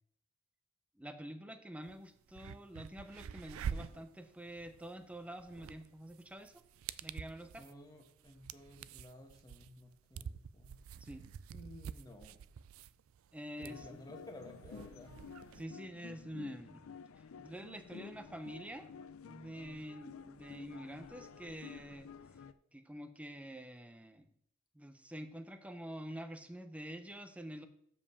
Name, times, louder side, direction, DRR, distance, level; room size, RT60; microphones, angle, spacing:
voice 1, 1.0-6.6 7.0-7.6 11.0-11.3 13.3-13.8 15.5-16.8 17.4-18.9 19.2-22.1 22.7-24.3 24.7-27.7, equal, 5° right, 8 dB, 0.6 m, -47 dB
sound 1, 1.8-1.9 2.3-15.6, right 7 dB, 75° right, 0.3 m, -47 dB
voice 2, 7.6-10.8 11.5-12.4 13.6-15.2, left 1 dB, 20° left, 2 dB, 1.3 m, -54 dB
sound 2, 13.7-22.5, left 6 dB, 85° left, 0.5 m, -52 dB
7.2 x 5.2 x 6.9 m, 0.70 s
head